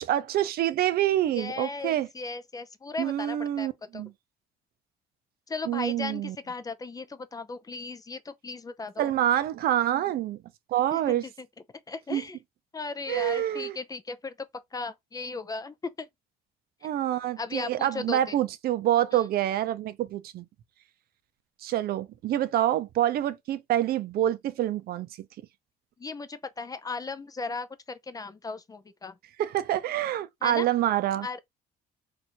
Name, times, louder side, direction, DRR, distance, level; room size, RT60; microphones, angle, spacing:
voice 1, 0.0-2.1 3.0-4.1 5.7-6.4 9.0-10.4 10.7-11.2 12.1-12.2 13.1-13.8 16.8-20.5 21.6-25.1 29.4-31.3, right 12 dB, 65° right, 0.6 m, -26 dB
voice 2, 1.3-4.0 5.5-9.1 10.9-11.2 11.9-12.4 12.7-16.1 17.4-18.2 19.1-19.2 26.0-29.1 30.4-30.7 31.2-31.4, left 4 dB, 20° left, 0.5 m, -36 dB
2.9 x 2.6 x 4.3 m
cardioid pair, 110°, 17 cm